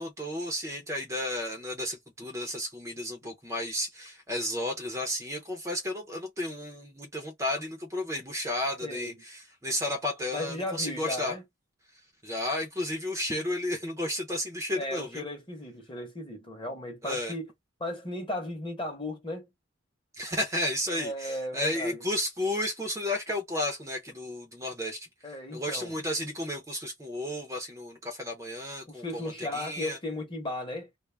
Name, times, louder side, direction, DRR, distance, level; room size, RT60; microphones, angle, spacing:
voice 1, 0.0-11.3 12.2-15.2 17.0-17.3 20.1-30.0, left 1 dB, 15° right, 0.5 m, -33 dB
voice 2, 8.8-9.2 10.3-11.4 14.7-17.5 17.8-19.5 20.9-22.0 25.2-25.9 28.9-30.9, left 1 dB, 25° left, 0.8 m, -36 dB
2.3 x 2.0 x 3.2 m
head